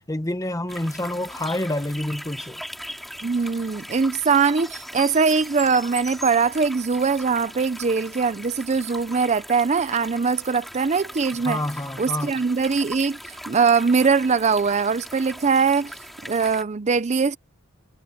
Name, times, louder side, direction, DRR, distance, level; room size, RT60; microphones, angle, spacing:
voice 1, 0.1-2.6 11.4-12.3, left 1 dB, 15° left, 1.2 m, -28 dB
sound 1, 0.7-16.6, equal, ahead, 3.5 m, -39 dB
voice 2, 3.2-11.6 12.0-15.9 16.2-17.4, right 5 dB, 35° right, 0.5 m, -21 dB
head